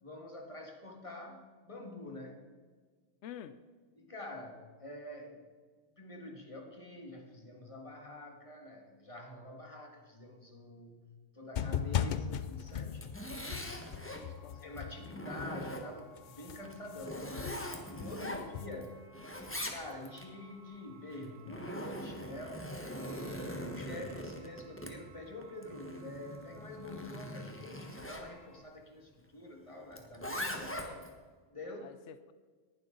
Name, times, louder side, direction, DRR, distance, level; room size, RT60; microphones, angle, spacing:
voice 1, 0.0-2.5 4.0-5.4 6.0-13.3 14.5-17.5 17.9-19.0 19.7-22.7 23.5-30.8 31.5-31.9, left 1 dB, 30° left, 1 dB, 2.0 m, -47 dB
voice 2, 3.2-3.6 14.1-14.7 18.2-18.4 30.8-31.1 31.8-32.3, left 9 dB, 90° left, 12 dB, 0.9 m, -49 dB
sound 1, 11.6-15.8 16.2-19.1, left 9 dB, 55° left, 0.6 m, -38 dB
Zipper (clothing), 12.7-14.3 14.8-16.1 16.6-18.9 19.1-20.3 21.1-28.3 29.9-31.1, equal, 10° left, 1.3 m, -42 dB
sound 2, 14.2-28.6, right 1 dB, 80° right, 4.2 m, -61 dB
19.0 x 11.5 x 4.0 m, 1.5 s
omnidirectional pair, 1.2 m